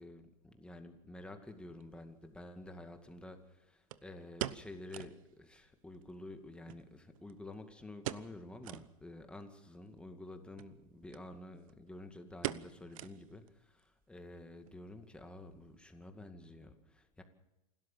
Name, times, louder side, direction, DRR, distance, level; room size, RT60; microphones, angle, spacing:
voice 1, 0.0-17.2, left 2 dB, 5° left, 6 dB, 2.2 m, -50 dB
sound 1, 1.8-1.9 3.9-5.2 5.6-5.7 5.9-6.0 6.7-7.5 8.0-8.4 8.6-8.9 9.4-9.5 10.5-10.7 11.1-11.2 11.5-11.9 12.4-13.5 13.8-13.9 14.5-14.8 15.1-15.2, right 14 dB, 75° right, 1.0 m, -42 dB
28.0 x 13.0 x 7.4 m, 0.95 s
supercardioid pair, 135°, 17 cm